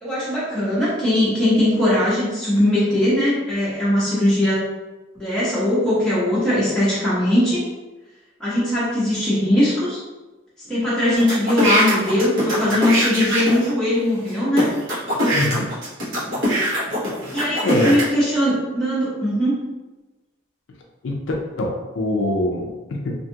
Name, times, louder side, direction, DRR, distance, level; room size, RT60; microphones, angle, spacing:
voice 1, 0.0-4.6 5.2-7.6 8.4-10.0 10.7-14.7 15.2-15.5 17.3-19.6, left 1 dB, 5° left, -11 dB, 0.7 m, -20 dB
sound 1, 11.2-13.7 14.3-14.4 14.6-18.1, equal, 70° right, 1.0 m, -22 dB
voice 2, 15.3-15.7 17.6-18.0 21.0-23.2, left 1 dB, 65° left, 0 dB, 0.4 m, -23 dB
2.5 x 2.3 x 2.7 m, 1.1 s
head